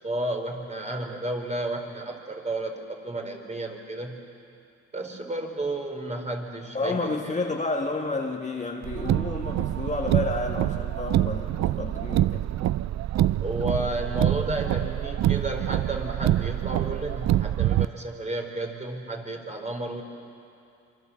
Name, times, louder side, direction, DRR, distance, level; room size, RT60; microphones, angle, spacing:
voice 1, 0.0-4.2 4.9-7.3 13.4-20.0, right 1 dB, 25° right, 2 dB, 4.1 m, -32 dB
voice 2, 6.7-12.5, left 3 dB, 25° left, 1 dB, 1.7 m, -30 dB
Car, 8.8-17.9, right 13 dB, 60° right, 0.5 m, -26 dB
27.0 x 24.0 x 7.2 m, 2.6 s
cardioid pair, 90°, 30 cm